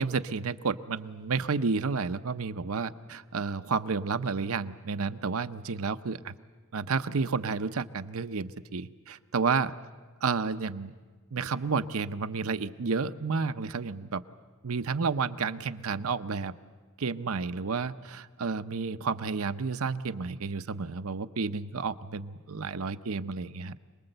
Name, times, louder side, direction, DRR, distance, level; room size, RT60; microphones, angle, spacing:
voice 1, 0.0-6.3 6.7-9.7 10.2-10.9 11.3-14.2 14.6-16.6 17.0-23.7, right 5 dB, 80° right, 10 dB, 0.7 m, -31 dB
27.0 x 20.0 x 7.9 m, 1.4 s
head